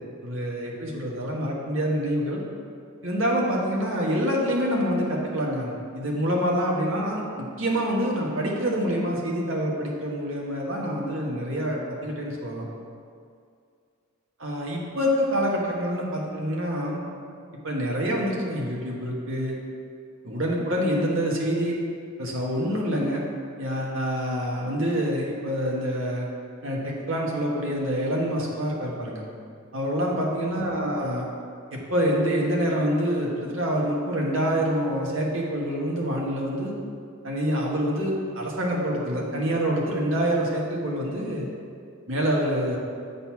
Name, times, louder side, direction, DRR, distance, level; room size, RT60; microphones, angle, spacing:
voice 1, 0.2-2.4 3.0-12.7 14.4-17.0 17.6-19.6 20.2-21.7 22.2-23.2 23.6-26.3 26.6-29.2 29.7-31.2 31.7-36.7 37.2-41.5 42.1-42.8, equal, 70° right, -2 dB, 1.4 m, -26 dB
7.7 x 4.0 x 5.8 m, 2.3 s
head